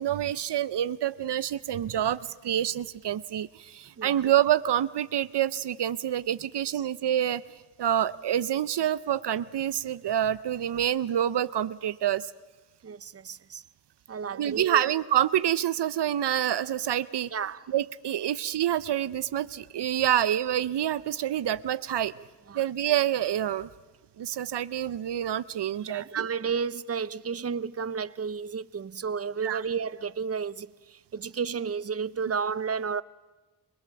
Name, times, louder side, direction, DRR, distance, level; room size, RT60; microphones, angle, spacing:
voice 1, 0.0-7.4 7.8-12.3 14.3-17.3 17.7-22.1 22.5-23.7 24.2-26.3 29.4-29.6, right 11 dB, 80° right, 0.6 m, -27 dB
voice 2, 12.8-13.6 14.1-14.8 17.3-17.6 22.5-22.6 25.9-33.0, right 6 dB, 35° right, 0.7 m, -32 dB
26.5 x 19.5 x 7.0 m
cardioid pair, 50°, 40 cm